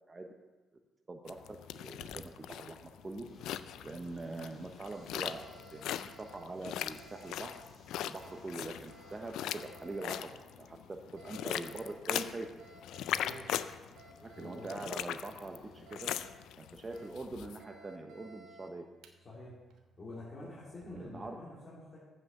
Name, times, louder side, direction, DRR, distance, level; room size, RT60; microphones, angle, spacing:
voice 1, 1.1-3.3 3.8-7.6 8.1-10.3 10.6-10.8 11.1-12.5 14.2-16.1 16.6-18.8 20.4-20.5 20.9-21.4, right 2 dB, 25° right, 3 dB, 0.8 m, -43 dB
sound 1, 1.3-17.6, left 11 dB, 85° left, 0.3 m, -40 dB
Alarm, 1.8-21.2, right 3 dB, 80° right, 1.0 m, -59 dB
sound 2, 3.2-16.8, left 3 dB, 55° left, 2.1 m, -62 dB
voice 2, 13.1-13.4 14.3-14.7 19.2-19.5 20.0-22.0, left 2 dB, 35° left, -7 dB, 2.8 m, -47 dB
7.7 x 6.1 x 7.5 m, 1.2 s
cardioid pair, 90°, 0 cm